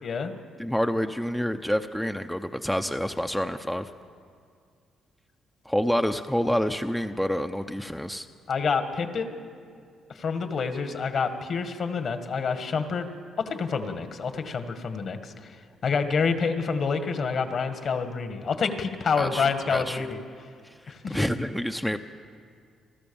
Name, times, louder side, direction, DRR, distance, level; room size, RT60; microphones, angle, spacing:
voice 1, 0.0-0.3 8.5-9.4 10.2-13.1 13.4-15.6 15.8-20.2 20.9-21.3, left 5 dB, 55° left, 8 dB, 1.9 m, -28 dB
voice 2, 0.6-3.9 5.7-8.3 19.1-20.0 20.6-22.0, equal, 5° left, 7 dB, 0.7 m, -28 dB
29.0 x 13.5 x 7.2 m, 2.2 s
cardioid pair, 90°, 0 cm